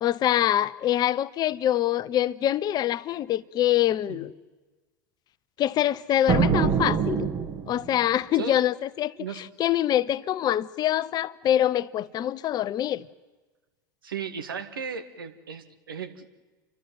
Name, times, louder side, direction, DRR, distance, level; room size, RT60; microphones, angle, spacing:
voice 1, 0.0-4.3 5.6-7.3 7.7-13.1, left 12 dB, 35° left, 0.7 m, -25 dB
sound 1, 6.3-8.0, right 7 dB, 35° right, 1.9 m, -24 dB
voice 2, 7.9-8.6 9.2-9.4 14.0-16.3, right 7 dB, 80° right, 1.7 m, -36 dB
29.5 x 12.5 x 9.2 m
figure-of-eight pair, 85°, 11 cm